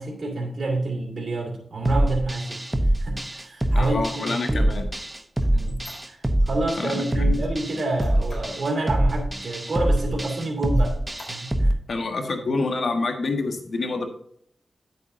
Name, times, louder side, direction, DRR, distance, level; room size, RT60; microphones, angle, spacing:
voice 1, 0.0-4.7 5.5-11.0 11.3-11.8, right 2 dB, 55° right, -3 dB, 2.7 m, -29 dB
sound 1, 1.9-11.7, right 1 dB, 15° right, 0.9 m, -24 dB
Squeak, 3.6-6.6 7.1-8.7 9.1-9.2 9.6-10.3 10.7-11.7, left 2 dB, 50° left, 3.9 m, -48 dB
voice 2, 3.7-4.9 6.8-7.3 11.9-14.1, left 3 dB, 70° left, 4 dB, 1.5 m, -27 dB
9.7 x 8.2 x 2.6 m, 0.67 s
wide cardioid pair, 85°, 0 cm